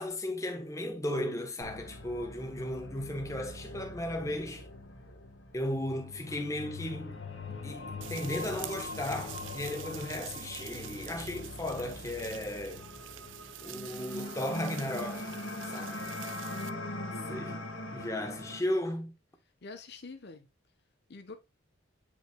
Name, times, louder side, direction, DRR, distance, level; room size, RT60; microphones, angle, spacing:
voice 1, 0.0-4.7 5.5-7.2 7.6-12.9 13.6-15.3 15.7-16.2 17.3-17.7 17.9-19.1, left 1 dB, 15° left, 1.0 m, -35 dB
sound 1, 1.6-18.6, left 2 dB, 70° left, 1.6 m, -42 dB
sound 2, 8.0-16.7, right 13 dB, 65° right, 0.5 m, -46 dB
sound 3, 12.4-18.2, equal, 80° right, 2.4 m, -55 dB
voice 2, 16.5-17.5 19.6-20.5 21.1-21.4, left 3 dB, 55° left, 0.8 m, -45 dB
8.7 x 5.3 x 2.2 m
head